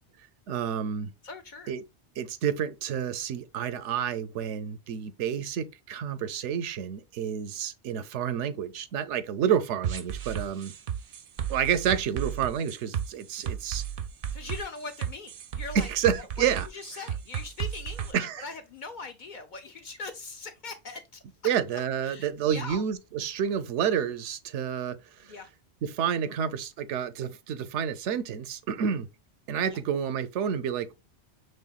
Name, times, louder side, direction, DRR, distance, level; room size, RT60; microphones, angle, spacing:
voice 1, 0.5-1.1 1.7-1.8 2.2-10.7 11.5-13.8 15.7-16.7 18.1-18.4 21.4-25.3 25.8-29.1 29.5-30.9, right 8 dB, 85° right, 0.9 m, -29 dB
voice 2, 1.2-1.7 14.3-16.3 16.7-21.2 22.0-22.8 25.2-25.5 29.7-29.8, left 4 dB, 55° left, 0.6 m, -41 dB
sound 1, 9.8-18.1, right 9 dB, 60° right, 0.6 m, -34 dB
5.6 x 3.2 x 2.3 m
omnidirectional pair, 1.2 m